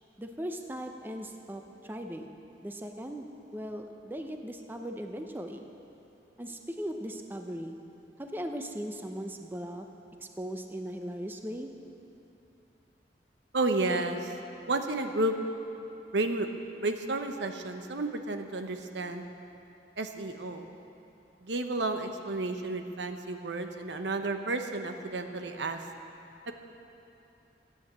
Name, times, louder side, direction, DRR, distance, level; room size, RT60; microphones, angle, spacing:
voice 1, 0.2-2.4 2.6-5.7 6.4-7.8 8.2-9.9 10.2-11.7, equal, 10° right, 4 dB, 0.6 m, -38 dB
voice 2, 13.5-14.3 14.7-15.4 16.1-16.5 16.8-19.2 20.0-20.7 21.4-25.8 26.5-26.6, right 2 dB, 90° right, 6 dB, 0.9 m, -31 dB
13.5 x 9.4 x 7.4 m, 2.8 s
head